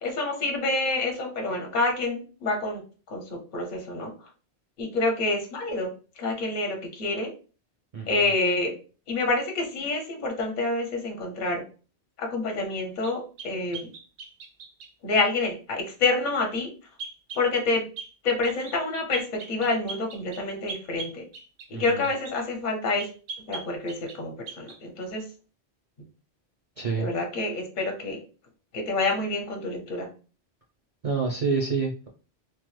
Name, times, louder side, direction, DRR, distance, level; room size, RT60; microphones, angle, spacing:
voice 1, 0.0-2.8 3.1-4.3 4.8-5.9 6.2-7.3 8.1-8.7 9.1-11.6 12.2-13.9 15.0-16.7 17.3-17.9 18.2-21.2 21.8-23.1 23.5-25.2 27.0-28.2 28.7-30.1, left 3 dB, 50° left, 2 dB, 0.8 m, -27 dB
voice 2, 7.9-8.2 21.7-22.0 26.8-27.1 31.0-32.1, right 5 dB, 45° right, -1 dB, 0.5 m, -28 dB
sound 1, 13.0-14.9 17.0-17.5 18.0-18.1 18.4-18.8 19.1-22.4 23.0-24.2 24.5-24.8, right 4 dB, 65° right, 0.8 m, -40 dB
3.0 x 2.0 x 3.1 m, 0.36 s
omnidirectional pair, 1.1 m